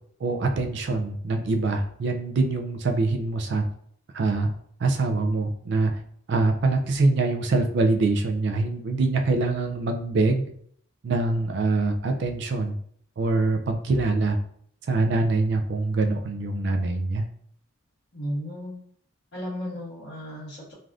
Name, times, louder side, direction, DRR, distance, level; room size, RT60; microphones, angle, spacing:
voice 1, 0.2-3.6 4.1-4.5 4.8-5.9 6.3-10.5 11.0-12.8 13.2-14.4 14.9-17.2, right 3 dB, 60° right, 5 dB, 0.3 m, -24 dB
voice 2, 18.1-18.7 19.3-20.7, equal, 55° left, -7 dB, 1.3 m, -34 dB
3.3 x 2.4 x 2.4 m, 0.63 s
head